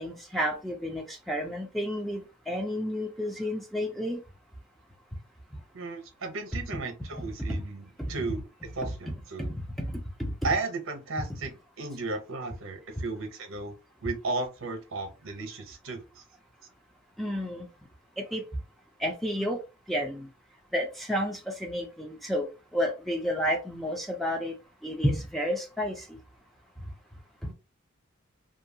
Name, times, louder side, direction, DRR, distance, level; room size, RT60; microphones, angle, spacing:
voice 1, 0.0-2.2 2.5-4.2 7.5-7.6 8.8-8.9 9.4-9.9 10.2-10.3 17.2-17.7 18.2-18.4 19.0-19.6 19.9-20.3 20.7-22.5 22.7-24.5 24.8-26.2, equal, ahead, 0.3 m, -31 dB
voice 2, 5.7-8.5 8.7-9.5 10.4-13.7 14.0-16.2 27.5-27.6, right 3 dB, 70° right, 0.7 m, -34 dB
2.7 x 2.3 x 2.6 m
head